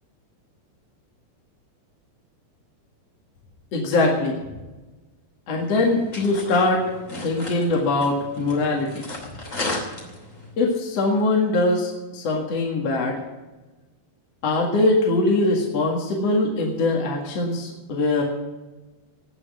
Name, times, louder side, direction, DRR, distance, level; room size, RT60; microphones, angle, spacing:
voice 1, 3.7-4.3 5.5-6.8 7.2-9.1 10.6-13.2 14.4-18.2, left 2 dB, 50° left, -1 dB, 2.3 m, -22 dB
sound 1, 5.6-10.5, left 2 dB, 20° left, 2.7 m, -35 dB
18.5 x 6.3 x 9.5 m, 1.2 s
omnidirectional pair, 4.8 m